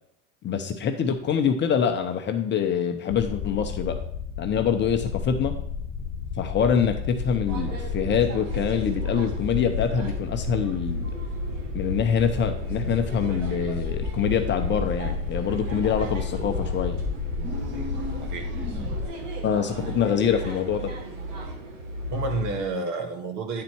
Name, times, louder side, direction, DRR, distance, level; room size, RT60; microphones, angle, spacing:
voice 1, 0.4-4.0 4.4-5.5 6.4-11.1 11.7-17.0 19.4-20.9, left 7 dB, 30° left, 6 dB, 0.7 m, -25 dB
sound 1, 3.1-19.1, left 7 dB, 55° left, 1.0 m, -32 dB
sound 2, 7.5-22.6, right 2 dB, 90° right, 1.6 m, -35 dB
sound 3, 17.4-19.3, equal, 30° right, 1.7 m, -38 dB
voice 2, 22.0-23.6, right 4 dB, 50° right, 5 dB, 1.6 m, -31 dB
9.6 x 4.1 x 4.5 m, 0.70 s
supercardioid pair, 115°, 37 cm